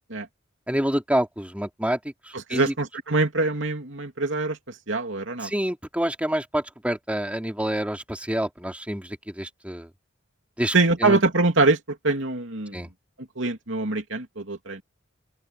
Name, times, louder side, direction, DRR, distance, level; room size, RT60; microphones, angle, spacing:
voice 1, 0.7-2.7 5.4-9.9 10.6-11.2 12.7-12.9, right 1 dB, 5° right, 3.0 m, -28 dB
voice 2, 2.5-5.5 10.7-12.8 13.4-14.8, right 3 dB, 65° right, 3.0 m, -24 dB
open air
head